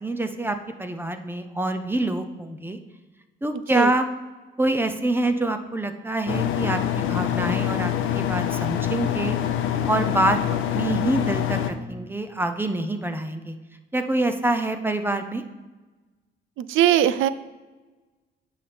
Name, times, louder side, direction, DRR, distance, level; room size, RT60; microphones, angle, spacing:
voice 1, 0.0-2.8 3.4-4.0 4.6-9.4 9.9-13.5 13.9-15.4, right 2 dB, 10° right, 7 dB, 0.6 m, -26 dB
sound 1, 6.3-11.7, left 10 dB, 85° left, 0.6 m, -25 dB
voice 2, 16.6-17.3, right 11 dB, 85° right, 15 dB, 0.4 m, -20 dB
9.7 x 5.7 x 3.4 m, 1.2 s
cardioid pair, 90°, 20 cm